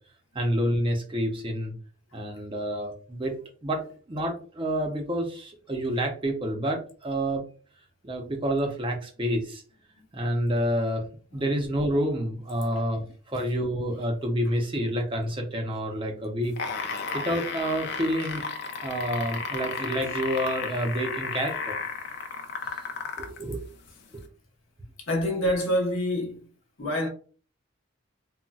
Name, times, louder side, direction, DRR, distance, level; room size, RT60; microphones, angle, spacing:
voice 1, 0.3-1.7 2.1-3.3 3.6-3.8 4.1-7.4 8.0-9.6 10.1-11.0 11.3-16.5 17.1-18.4 18.8-21.8 23.2-23.6, equal, 25° right, 0.5 m, -28 dB
sound 1, 16.4-23.4 24.2-24.3, left 5 dB, 50° left, 0.5 m, -33 dB
voice 2, 25.0-26.5 26.8-27.1, equal, 70° left, 0.8 m, -27 dB
3.9 x 2.1 x 2.3 m
head